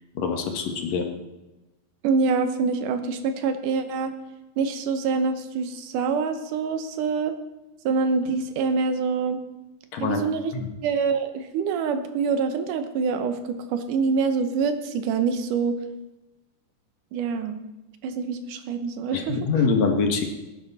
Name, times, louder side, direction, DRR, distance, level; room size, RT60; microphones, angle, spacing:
voice 1, 0.1-1.1 9.9-10.2 10.5-10.7 19.1-20.2, left 5 dB, 60° left, 4 dB, 2.4 m, -24 dB
voice 2, 2.0-4.1 4.6-7.3 7.8-9.4 10.0-10.5 10.8-15.8 17.1-17.6 18.0-19.4, right 5 dB, 75° right, 8 dB, 2.6 m, -25 dB
18.0 x 10.0 x 4.2 m, 1.0 s
omnidirectional pair, 3.7 m